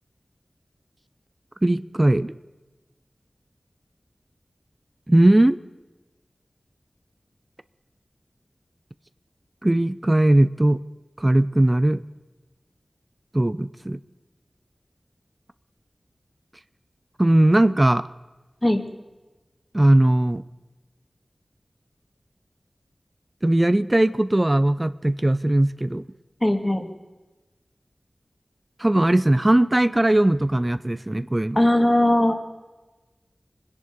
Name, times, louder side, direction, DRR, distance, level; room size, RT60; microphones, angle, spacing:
voice 1, 1.6-2.3 5.1-5.6 9.6-10.8 11.2-12.0 13.3-14.0 17.2-18.0 19.7-20.4 23.4-26.0 28.8-31.6, right 1 dB, 30° right, 14 dB, 0.6 m, -19 dB
voice 2, 26.4-26.9 31.6-32.3, left 1 dB, 25° left, 5 dB, 2.2 m, -19 dB
24.5 x 10.5 x 5.2 m, 1.2 s
wide cardioid pair, 40°, 0 cm